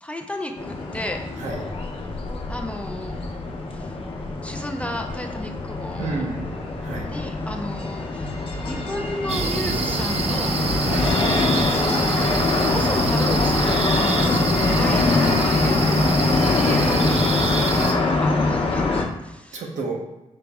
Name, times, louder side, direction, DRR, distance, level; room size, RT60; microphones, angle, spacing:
voice 1, 0.0-1.2 2.5-3.2 3.7-4.0 4.4-6.3 7.0-8.4 8.7-10.6 11.6-12.3 12.6-19.6, left 1 dB, 10° left, 3 dB, 0.4 m, -34 dB
sound 1, 0.6-19.0, left 3 dB, 50° left, 0.8 m, -23 dB
voice 2, 6.0-7.1 10.8-11.1 19.5-20.0, right 3 dB, 75° right, 0 dB, 0.9 m, -30 dB
sound 2, 9.3-17.9, right 4 dB, 60° right, 0.5 m, -26 dB
4.7 x 2.9 x 3.5 m, 1.0 s
cardioid pair, 105°, 12 cm